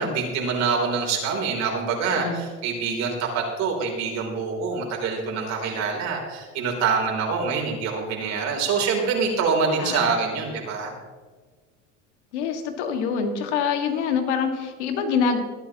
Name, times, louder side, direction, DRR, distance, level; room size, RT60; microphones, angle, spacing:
voice 1, 0.0-10.9, right 5 dB, 55° right, 0 dB, 3.5 m, -25 dB
voice 2, 2.1-2.4 9.8-10.1 12.3-15.4, left 6 dB, 85° left, 5 dB, 1.9 m, -25 dB
22.5 x 9.2 x 2.9 m, 1.4 s
supercardioid pair, 110°, 33 cm